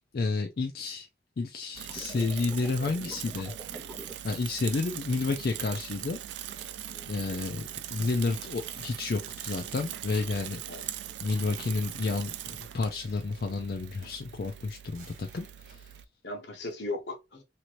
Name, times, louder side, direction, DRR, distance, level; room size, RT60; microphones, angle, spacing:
voice 1, 0.1-1.1 1.4-3.5 4.2-6.6 7.1-7.6 7.9-10.9 11.2-15.9, left 3 dB, 55° left, 0.4 m, -31 dB
Bicycle / Mechanisms, 1.7-16.0, right 11 dB, 75° right, 0.3 m, -41 dB
sound 1, 1.9-4.1, right 1 dB, 15° right, 0.8 m, -44 dB
sound 2, 6.6-7.6 8.3-9.1 9.8-9.9 10.1-10.4 11.4-12.8 13.4-13.6 14.0-15.9 16.7-16.8, right 3 dB, 45° right, 0.9 m, -54 dB
voice 2, 6.9-7.8 10.7-11.2 16.2-17.4, left 2 dB, 75° left, 1.0 m, -39 dB
2.9 x 2.5 x 3.0 m
head